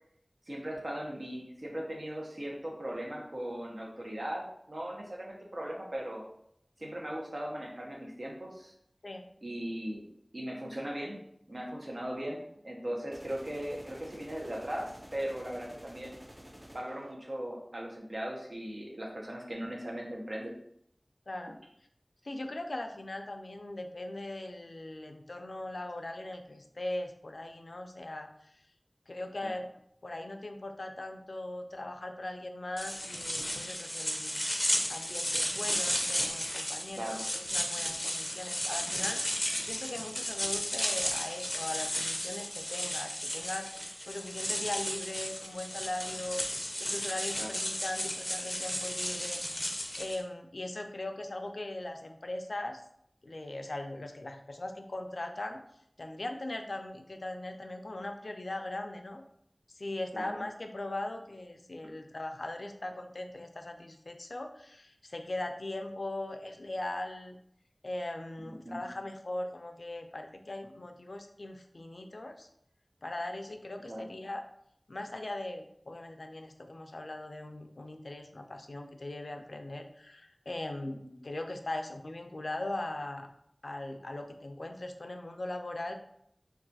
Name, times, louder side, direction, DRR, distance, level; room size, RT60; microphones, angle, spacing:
voice 1, 0.5-6.2 6.8-8.7 9.4-10.0 10.3-11.2 11.5-16.2 16.7-20.5 29.4-29.5 37.0-37.2 47.4-47.5 60.1-60.4 68.4-68.8 73.9-74.0 81.0-81.1, right 1 dB, 70° right, -1 dB, 0.7 m, -38 dB
sound 1, 13.1-17.1, equal, 30° right, 0.5 m, -51 dB
voice 2, 21.3-21.6 22.2-28.5 29.1-29.7 30.0-52.8 53.2-55.6 56.0-59.2 59.7-67.4 67.8-72.5 73.0-74.4 74.9-83.3 83.6-85.9, left 1 dB, 90° left, 5 dB, 0.3 m, -40 dB
sound 2, 32.8-50.2, left 1 dB, 25° left, 0.5 m, -34 dB
2.4 x 2.3 x 3.9 m, 0.71 s
wide cardioid pair, 40°, 0 cm